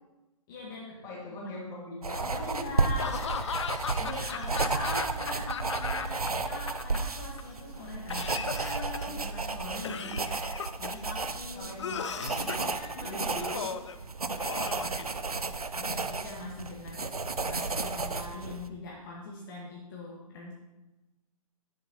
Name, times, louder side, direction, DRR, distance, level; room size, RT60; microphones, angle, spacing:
voice 1, 0.5-1.0 2.4-3.7 4.0-8.4 9.1-10.1 10.8-12.0 12.5-13.7 15.7-17.1 17.4-20.5, left 2 dB, 35° left, -4 dB, 1.6 m, -42 dB
voice 2, 1.0-2.9 8.0-9.2 9.6-10.4 11.5-13.7, left 2 dB, 20° left, -3 dB, 2.1 m, -41 dB
sound 1, 2.0-18.7, right 3 dB, 85° right, 0.6 m, -33 dB
Laughter / Cough, 3.0-6.3 6.6-7.4 8.1-9.2 9.8-11.0 11.8-12.7 13.4-14.0 14.4-15.6, left 7 dB, 55° left, 0.5 m, -37 dB
10.0 x 7.7 x 2.9 m, 1.0 s
figure-of-eight pair, 125°, 18 cm